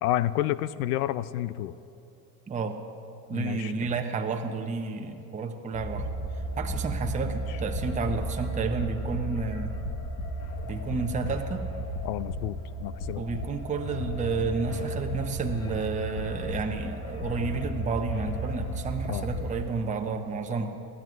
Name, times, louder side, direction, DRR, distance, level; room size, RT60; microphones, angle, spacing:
voice 1, 0.0-1.8 3.3-4.0 7.3-7.4 12.0-13.2 19.1-19.3, left 13 dB, 70° left, 16 dB, 0.5 m, -30 dB
voice 2, 2.5-2.8 3.3-6.1 6.6-9.8 10.7-11.6 13.2-20.8, right 4 dB, 15° right, 4 dB, 0.8 m, -31 dB
sound 1, 5.7-19.6, equal, 50° left, 1.7 m, -34 dB
22.0 x 14.0 x 2.5 m, 3.0 s
hypercardioid pair, 85°, 47 cm